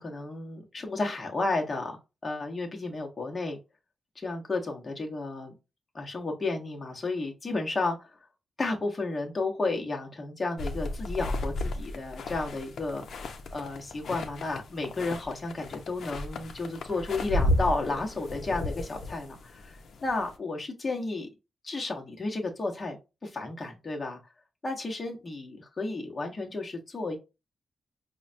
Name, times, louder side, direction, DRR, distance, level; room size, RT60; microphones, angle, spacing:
voice 1, 0.0-3.6 4.2-5.5 5.9-8.2 8.6-21.3 21.6-23.0 23.2-24.2 24.6-27.2, left 3 dB, 25° left, 1 dB, 0.9 m, -32 dB
sound 1, 10.6-20.4, left 1 dB, 65° left, 0.6 m, -34 dB
5.3 x 2.2 x 2.6 m, 0.26 s
wide cardioid pair, 170°, 0 cm